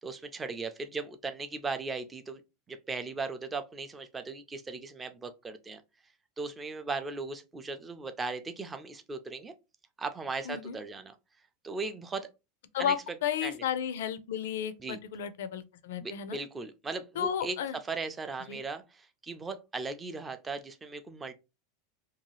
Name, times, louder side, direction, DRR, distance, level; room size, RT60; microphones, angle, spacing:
voice 1, 0.0-2.4 2.7-5.8 6.4-9.5 10.0-11.1 11.6-12.3 12.8-12.9 13.4-13.5 14.8-15.0 16.0-17.6 17.9-21.3, right 3 dB, 15° right, 0.4 m, -37 dB
voice 2, 12.7-16.4 17.2-17.8 18.5-18.6, left 9 dB, 85° left, 0.4 m, -33 dB
2.7 x 2.3 x 3.0 m
supercardioid pair, 150°, 0 cm